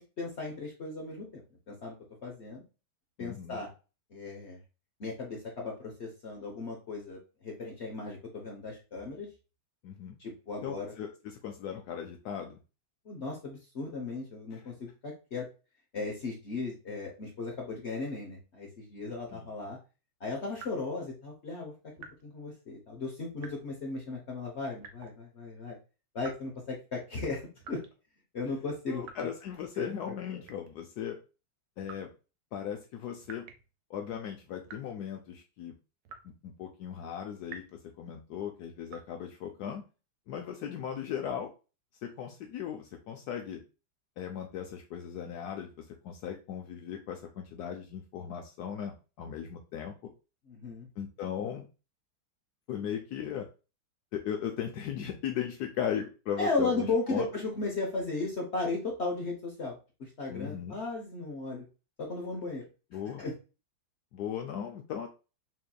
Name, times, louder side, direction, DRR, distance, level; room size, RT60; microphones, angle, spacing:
voice 1, 0.0-1.9 2.2-2.6 3.2-3.7 4.1-4.6 5.0-9.3 10.2-10.9 13.0-15.5 15.9-19.8 20.2-21.7 22.2-25.8 26.1-27.4 27.7-27.8 28.3-29.3 29.7-29.9 30.3-30.4 50.5-50.9 56.4-61.7 62.0-62.6 63.2-63.3, left 3 dB, 55° left, -1 dB, 0.7 m, -36 dB
voice 2, 3.2-3.6 9.8-10.2 10.6-12.6 14.5-14.6 19.3-19.5 28.9-31.2 31.8-32.1 32.5-33.5 33.9-35.7 36.4-39.8 40.3-41.5 42.0-43.6 44.2-49.9 51.0-51.7 52.7-53.5 54.1-57.3 60.3-60.8 62.9-63.2 64.1-65.1, left 9 dB, 85° left, 3 dB, 0.8 m, -37 dB
sound 1, 20.5-21.0 22.0-22.3 23.4-23.8 24.8-25.2 26.2-26.6 27.6-27.9 29.0-29.4 30.4-30.8 31.8-32.1 33.2-33.7 34.6-34.9 36.0-36.4 37.5-37.8 38.9-39.1, right 5 dB, 70° right, 1.2 m, -49 dB
5.9 x 2.7 x 2.2 m, 0.32 s
omnidirectional pair, 2.3 m